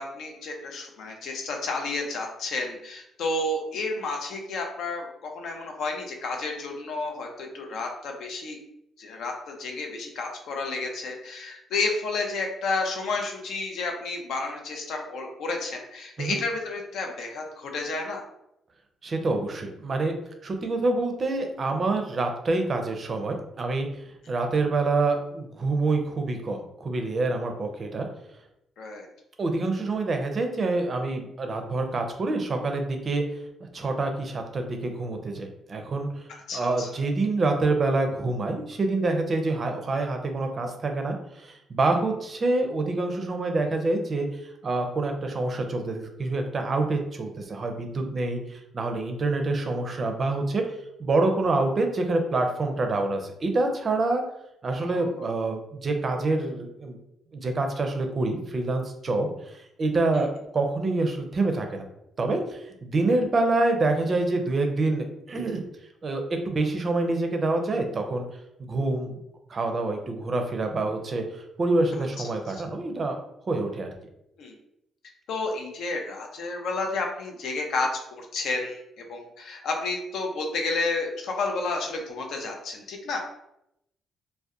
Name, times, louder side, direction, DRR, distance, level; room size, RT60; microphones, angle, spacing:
voice 1, 0.0-8.6 9.0-18.2 28.8-29.1 36.3-36.9 54.8-55.3 60.1-60.2 72.5-72.6 74.4-74.5 75.3-77.9 78.2-83.2, left 3 dB, 75° left, 2 dB, 0.5 m, -31 dB
voice 2, 19.0-20.2 20.4-28.1 29.4-33.2 33.7-36.3 36.5-54.2 54.6-57.0 57.3-60.3 60.5-61.8 62.2-65.6 66.0-68.3 68.6-69.2 69.5-73.2 73.5-73.9, right 2 dB, 40° right, 4 dB, 0.4 m, -26 dB
2.6 x 2.1 x 2.3 m, 0.81 s
cardioid pair, 90°, 0 cm